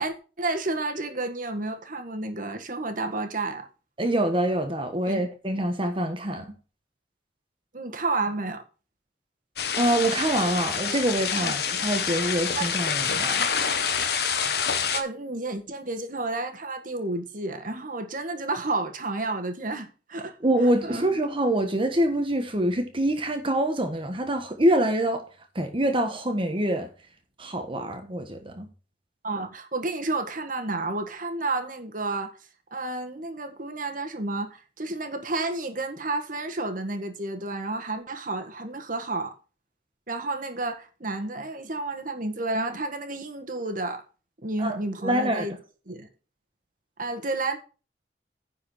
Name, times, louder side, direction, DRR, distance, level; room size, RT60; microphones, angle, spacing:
voice 1, 0.0-3.7 5.0-5.2 7.7-8.6 11.3-11.5 12.6-12.7 14.9-20.4 20.8-21.1 29.2-32.4 32.7-39.3 40.1-44.0 44.4-45.5 45.9-46.1 47.0-47.6, right 2 dB, 50° right, 1.6 m, -31 dB
voice 2, 4.0-6.5 9.8-13.5 20.4-25.2 25.5-26.9 27.4-28.7 44.6-44.8 45.0-45.5, right 1 dB, 30° right, 1.3 m, -25 dB
sound 1, 9.6-15.0, left 6 dB, 60° left, 1.3 m, -27 dB
10.5 x 4.9 x 6.3 m
head